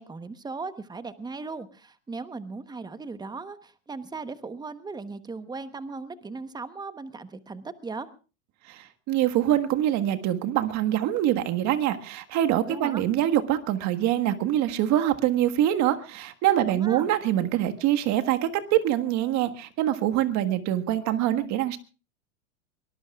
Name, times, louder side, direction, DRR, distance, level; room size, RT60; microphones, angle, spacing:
voice 1, 0.0-8.1 12.7-13.0 16.7-17.1, right 4 dB, 10° right, 12 dB, 1.0 m, -37 dB
voice 2, 8.7-21.8, right 12 dB, 45° right, 8 dB, 1.6 m, -24 dB
24.0 x 19.5 x 2.4 m, 0.33 s
hypercardioid pair, 120°, 41 cm